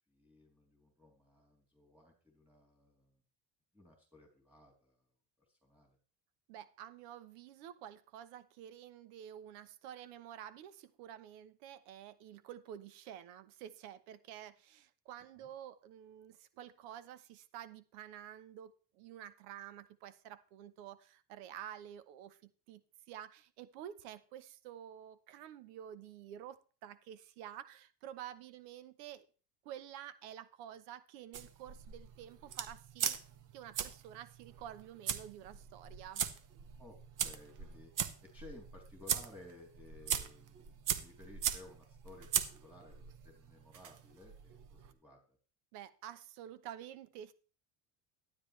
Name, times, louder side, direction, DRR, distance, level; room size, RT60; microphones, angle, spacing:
voice 1, 0.1-3.2 3.7-5.0 5.5-6.0 15.4-15.5 36.8-37.9 38.2-45.4, left 2 dB, 5° right, 0 dB, 3.2 m, -57 dB
voice 2, 6.5-29.2 29.6-33.2 33.5-36.2 45.7-47.3, right 10 dB, 90° right, 14 dB, 1.1 m, -50 dB
sound 1, 31.3-44.9, right 9 dB, 45° right, 1.2 m, -40 dB
12.5 x 9.6 x 3.2 m, 0.38 s
cardioid pair, 120°, 44 cm